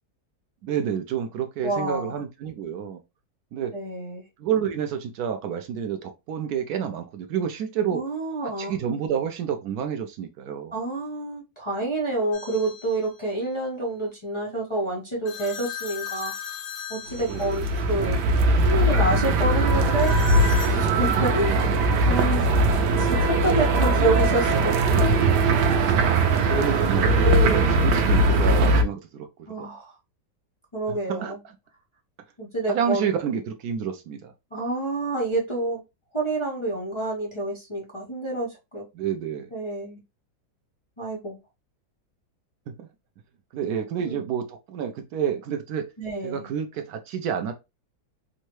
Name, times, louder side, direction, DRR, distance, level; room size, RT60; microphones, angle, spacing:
voice 1, 0.6-3.0 3.5-3.8 4.4-8.0 8.4-10.7 17.3-17.4 25.9-29.3 29.6-29.7 30.9-31.3 32.7-34.3 38.9-39.5 42.7-42.9 43.5-45.9 46.2-47.5, right 8 dB, 75° right, 1.0 m, -29 dB
voice 2, 1.6-2.2 3.7-4.2 7.9-8.7 10.7-16.5 16.9-18.2 18.5-20.2 20.7-21.6 22.0-22.5 23.0-25.1 27.2-27.7 29.5-29.9 30.7-31.4 32.4-33.1 34.5-35.8 36.1-38.8 39.5-40.0 41.0-41.4 44.0-44.2 46.0-46.5, right 2 dB, 25° left, 0.7 m, -28 dB
sound 1, 12.3-13.1 15.3-17.9 20.0-20.8, left 8 dB, 80° left, 1.5 m, -37 dB
sound 2, 17.1-28.8, right 2 dB, 90° right, 1.2 m, -20 dB
3.6 x 2.1 x 2.9 m
omnidirectional pair, 1.8 m